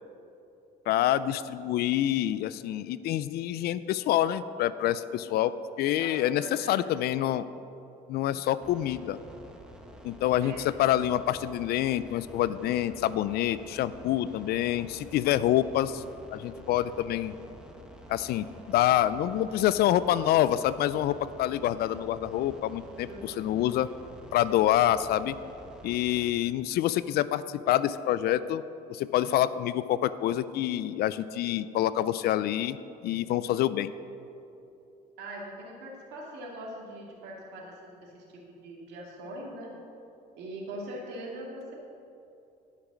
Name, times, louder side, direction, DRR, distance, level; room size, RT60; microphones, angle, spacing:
voice 1, 0.9-7.4 8.1-9.2 10.0-16.0 16.3-17.3 18.1-23.9 24.3-25.4 25.8-28.6 28.9-32.8 33.0-33.9, left 12 dB, 70° left, 15 dB, 0.4 m, -27 dB
voice 2, 6.0-6.9 8.3-8.7 10.4-10.7 23.1-23.5 35.2-38.2 38.6-39.7 40.4-41.7, right 1 dB, 80° right, -2 dB, 2.3 m, -42 dB
sound 1, 8.6-26.3, right 1 dB, 5° right, 1.2 m, -49 dB
12.0 x 5.8 x 6.1 m, 2.8 s
cardioid pair, 110°, 17 cm